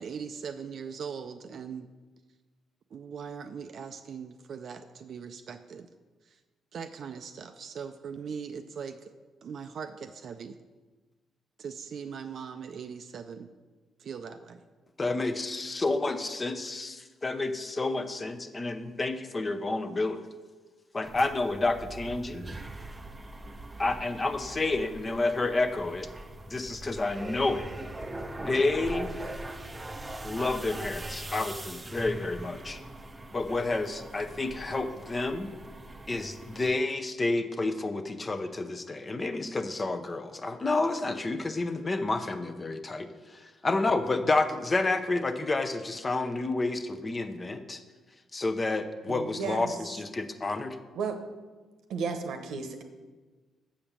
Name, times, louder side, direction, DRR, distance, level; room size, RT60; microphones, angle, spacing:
voice 1, 0.0-1.9 2.9-5.9 6.2-6.4 6.7-9.1 9.4-10.6 11.6-13.5 14.0-14.6, right 6 dB, 60° right, 7 dB, 0.4 m, -40 dB
voice 2, 15.0-20.2 20.9-22.4 23.8-26.1 26.5-27.7 28.4-29.1 30.2-32.8 33.3-35.5 36.1-43.1 43.3-47.8 48.3-50.8, left 2 dB, 25° left, 9 dB, 0.7 m, -30 dB
sound 1, 21.0-36.7, right 1 dB, 20° right, 0.6 m, -41 dB
voice 3, 49.1-49.7 51.0-51.2 51.9-52.8, right 5 dB, 75° right, 6 dB, 0.9 m, -33 dB
7.1 x 5.2 x 7.2 m, 1.3 s
cardioid pair, 90°, 0 cm